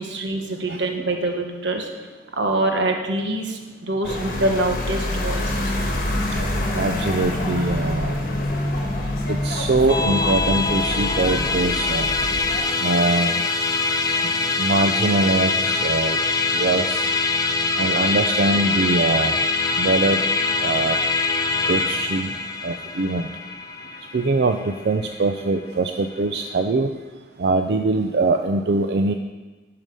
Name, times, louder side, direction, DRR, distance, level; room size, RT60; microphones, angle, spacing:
voice 1, 0.0-1.9 2.4-5.7, right 2 dB, 90° right, 3 dB, 1.3 m, -25 dB
sound 1, 4.0-12.6, left 1 dB, 50° left, 1.4 m, -26 dB
voice 2, 6.7-8.1 9.3-12.1 12.8-13.3 14.6-16.2 16.6-17.0 17.8-19.3 19.8-20.2 20.6-20.9 21.7-22.3 22.6-23.2 24.1-24.6 24.8-26.9 27.4-29.1, right 3 dB, 60° right, 6 dB, 0.5 m, -22 dB
Musical instrument, 9.9-25.4, left 3 dB, 20° left, 0.5 m, -23 dB
11.0 x 6.6 x 5.4 m, 1.3 s
head